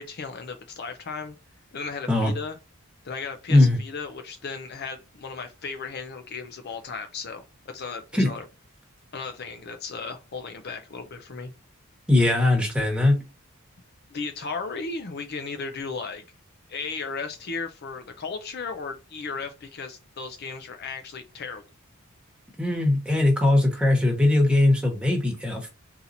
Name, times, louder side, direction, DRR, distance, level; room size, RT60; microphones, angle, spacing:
voice 1, 0.0-1.4 1.7-2.6 3.0-8.5 9.1-11.5 14.1-16.2 16.7-21.6, left 4 dB, 50° left, 0.5 m, -35 dB
voice 2, 12.1-13.2 22.6-25.7, left 2 dB, 5° right, 1.2 m, -20 dB
4.2 x 2.8 x 3.9 m
head